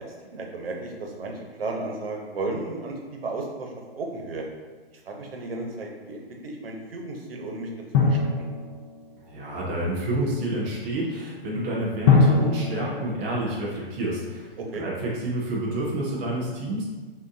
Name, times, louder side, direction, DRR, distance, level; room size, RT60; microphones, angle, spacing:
voice 1, 0.0-4.5 4.9-8.5 14.6-14.8, right 2 dB, 75° right, 1 dB, 1.0 m, -34 dB
Drum, 7.9-9.5 12.1-14.2, left 4 dB, 30° left, 0.6 m, -23 dB
voice 2, 9.2-16.9, right 1 dB, 15° right, -5 dB, 0.3 m, -29 dB
5.9 x 2.6 x 2.7 m, 1.3 s
hypercardioid pair, 145°, 30 cm